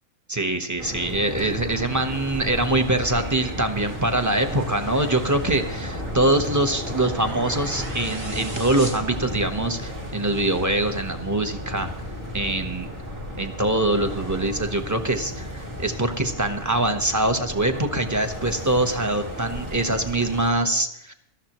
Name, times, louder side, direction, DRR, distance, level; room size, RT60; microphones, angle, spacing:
voice 1, 0.3-11.9 12.3-12.9 13.4-21.1, right 2 dB, 15° right, 6 dB, 0.9 m, -24 dB
sound 1, 0.8-20.5, equal, 40° right, 2.3 m, -34 dB
sound 2, 5.3-9.9, right 1 dB, 65° right, 2.9 m, -37 dB
18.5 x 13.0 x 3.0 m, 0.74 s
omnidirectional pair, 1.4 m